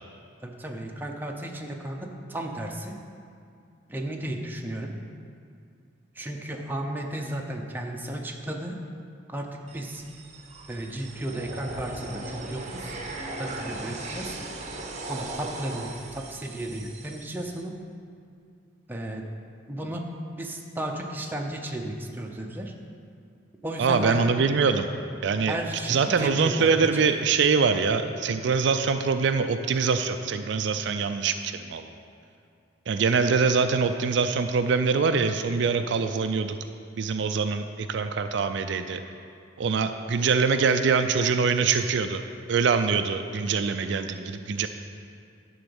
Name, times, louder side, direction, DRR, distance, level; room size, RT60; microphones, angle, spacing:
voice 1, 0.4-3.0 3.9-4.9 6.1-8.7 9.3-10.0 10.7-13.0 13.4-14.4 15.1-17.7 18.9-19.2 19.7-20.0 20.4-22.7 23.6-24.2 25.5-26.9, right 1 dB, 10° right, 1 dB, 0.7 m, -34 dB
sound 1, 9.7-17.6, right 2 dB, 40° right, 0.8 m, -38 dB
voice 2, 23.8-24.9 25.2-25.5 25.9-31.9 32.9-36.6 37.0-39.0 39.6-42.2 42.5-44.7, right 5 dB, 65° right, 8 dB, 0.4 m, -24 dB
11.5 x 3.9 x 7.0 m, 2.4 s
head